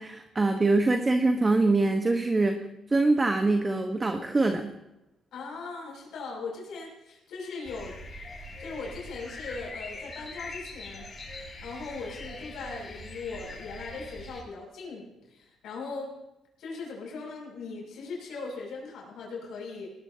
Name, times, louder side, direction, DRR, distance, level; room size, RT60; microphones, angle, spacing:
voice 1, 0.0-4.7, right 2 dB, 25° right, 5 dB, 1.2 m, -24 dB
voice 2, 5.3-8.0 8.3-11.1 11.6-16.1 16.6-19.9, left 4 dB, 80° left, -2 dB, 6.7 m, -39 dB
sound 1, 7.6-14.4, left 2 dB, 35° left, 6.4 m, -42 dB
19.0 x 18.5 x 2.8 m, 0.92 s
cardioid pair, 90°, 0 cm